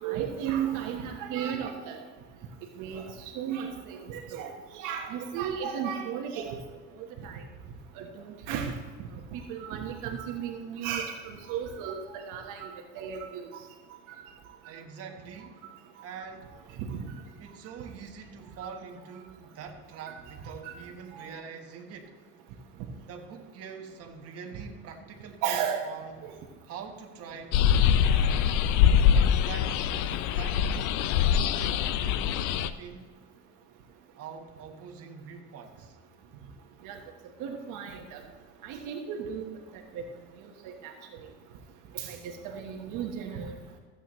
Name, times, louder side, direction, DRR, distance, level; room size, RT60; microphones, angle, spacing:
voice 1, 0.0-2.0 2.8-3.1 3.3-6.6 7.2-7.4 8.0-8.7 9.3-13.5 16.8-17.1 20.1-20.2 20.6-20.7 25.4-25.8 26.2-26.3 36.8-37.0 37.4-38.2 38.6-39.5 40.6-40.9 41.9-42.2 42.5-43.6, right 8 dB, 70° right, 3 dB, 1.3 m, -34 dB
voice 2, 14.6-15.6 16.0-16.6 17.4-22.2 23.1-26.2 26.6-27.6 28.0-28.5 29.1-33.1 34.1-36.0, right 6 dB, 45° right, 3 dB, 1.4 m, -44 dB
sound 1, 27.5-32.7, left 8 dB, 65° left, 0.6 m, -23 dB
15.0 x 8.0 x 3.1 m, 1.5 s
supercardioid pair, 110°, 33 cm